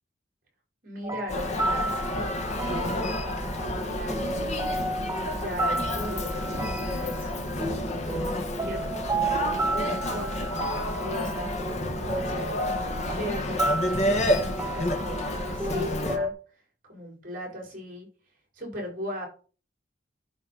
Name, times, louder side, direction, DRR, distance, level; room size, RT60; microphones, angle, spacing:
voice 1, 0.8-4.5 5.3-7.3 7.9-11.8 12.1-16.3 16.9-18.1 18.5-19.3, equal, 50° right, 0 dB, 4.9 m, -38 dB
sound 1, 1.0-16.3, right 2 dB, 15° right, 0.9 m, -33 dB
Human voice, 1.3-16.2, left 1 dB, 40° left, 1.6 m, -30 dB
11.0 x 4.4 x 5.8 m, 0.38 s
head